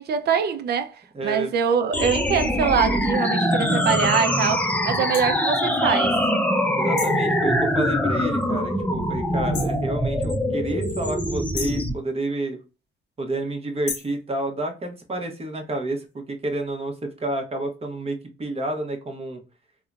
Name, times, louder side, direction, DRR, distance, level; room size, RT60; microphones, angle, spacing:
voice 1, 0.0-6.2, right 7 dB, 55° right, 0.5 m, -24 dB
voice 2, 1.1-1.5 6.7-12.6 13.2-19.4, right 2 dB, 30° right, 0.9 m, -29 dB
sound 1, 1.9-11.9, left 1 dB, 5° left, 0.5 m, -23 dB
sound 2, 5.1-5.3 7.0-7.3 9.5-9.8 11.5-11.9 13.9-14.2, left 6 dB, 60° left, 0.7 m, -33 dB
3.5 x 2.2 x 2.4 m
cardioid pair, 90°, 20 cm